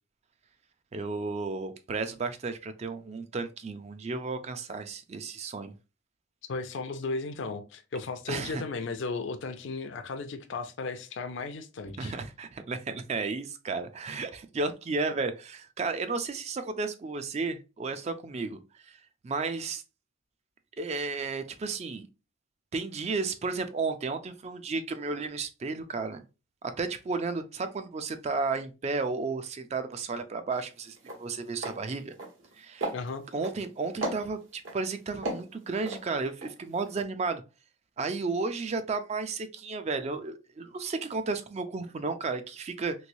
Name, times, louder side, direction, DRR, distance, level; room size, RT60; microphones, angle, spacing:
voice 1, 0.9-5.7 8.3-8.6 12.0-19.0 19.2-19.8 20.8-22.1 22.7-26.2 26.8-32.1 32.6-32.9 33.3-37.4 38.0-42.9, right 4 dB, 30° right, 0.3 m, -33 dB
voice 2, 6.5-12.1 32.9-33.3, left 3 dB, 60° left, 0.4 m, -35 dB
sound 1, 30.5-30.7 31.0-31.2 31.6-31.8 32.1-32.5 32.8-33.6 34.0-34.8 35.2-36.5 36.9-37.0, right 2 dB, 70° right, 1.3 m, -35 dB
3.1 x 3.0 x 2.6 m
head